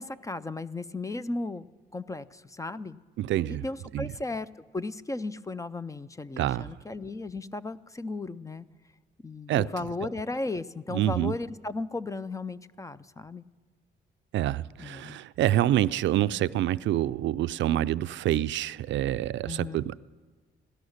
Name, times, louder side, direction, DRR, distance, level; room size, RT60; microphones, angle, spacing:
voice 1, 0.0-1.7 1.9-3.0 3.5-4.5 4.7-8.7 9.2-13.4 14.8-15.2 16.3-16.4 19.5-19.8, left 3 dB, 15° left, 16 dB, 0.4 m, -35 dB
voice 2, 3.2-3.6 3.9-4.1 6.4-6.7 9.5-9.7 10.9-11.3 14.3-20.0, right 13 dB, 70° right, 16 dB, 0.4 m, -27 dB
17.0 x 13.0 x 6.5 m, 1.4 s
cardioid pair, 90°, 20 cm